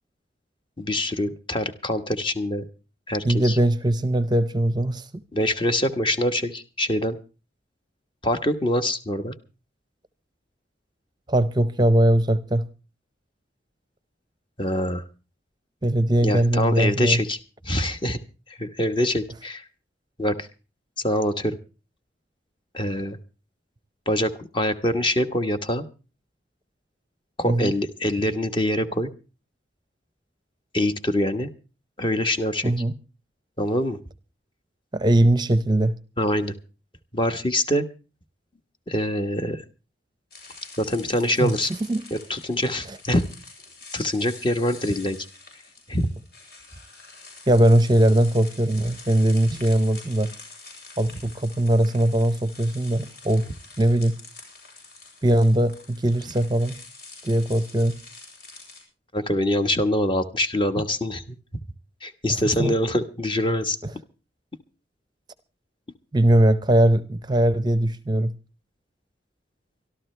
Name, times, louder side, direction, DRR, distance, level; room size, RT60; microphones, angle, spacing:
voice 1, 0.8-2.6 3.1-3.6 5.3-7.2 8.2-9.3 14.6-15.0 16.2-17.4 17.6-18.2 18.6-19.6 20.2-20.5 21.0-21.6 22.7-23.2 24.1-25.8 27.4-29.1 30.7-31.5 32.0-32.7 33.6-34.0 36.2-36.5 37.1-37.8 38.9-39.6 40.8-41.7 42.1-43.2 43.9-45.2 45.9-46.1 59.1-61.4 62.0-63.8, left 1 dB, 25° left, 1.2 m, -24 dB
voice 2, 3.2-5.2 11.3-12.6 15.8-17.2 27.4-27.7 32.6-33.0 34.9-35.9 41.4-41.5 41.9-42.0 42.9-43.0 47.5-50.3 51.0-53.5 53.8-54.2 55.2-56.8 57.2-58.0 62.3-62.8 63.8-63.9 66.1-68.3, right 1 dB, 25° right, 0.7 m, -20 dB
sound 1, 40.3-58.8, left 3 dB, 55° left, 7.5 m, -46 dB
24.5 x 13.0 x 3.3 m
head